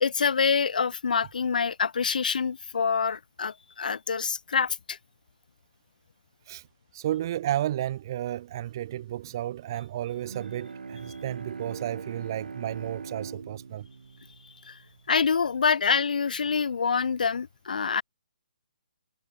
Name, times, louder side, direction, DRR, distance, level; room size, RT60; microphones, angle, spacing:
voice 1, 0.0-5.0 14.6-14.8 15.1-18.0, left 6 dB, 70° left, 0.6 m, -26 dB
voice 2, 6.9-13.9, right 12 dB, 25° right, 0.4 m, -32 dB
Bowed string instrument, 10.1-15.5, right 5 dB, 85° right, 1.6 m, -42 dB
hypercardioid pair, 170°, 5 cm